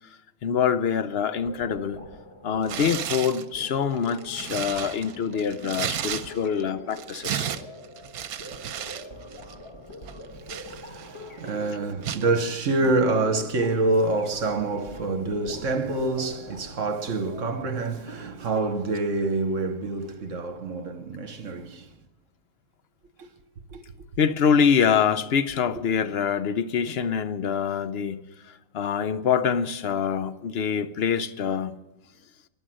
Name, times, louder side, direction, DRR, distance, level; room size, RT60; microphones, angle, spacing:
voice 1, 0.4-2.0 2.4-7.5 24.2-28.2 28.7-31.7, left 7 dB, 55° left, 0.8 m, -25 dB
sound 1, 1.4-19.0, left 1 dB, 20° left, 1.2 m, -44 dB
Tearing, 2.6-3.4 4.0-6.6 6.9-9.1 9.3-9.5 10.1-11.2 12.0-12.3, right 9 dB, 80° right, 1.2 m, -33 dB
voice 2, 10.4-21.9 23.2-23.3 23.7-23.8, right 2 dB, 60° right, 1.4 m, -27 dB
14.5 x 11.0 x 7.6 m
omnidirectional pair, 1.5 m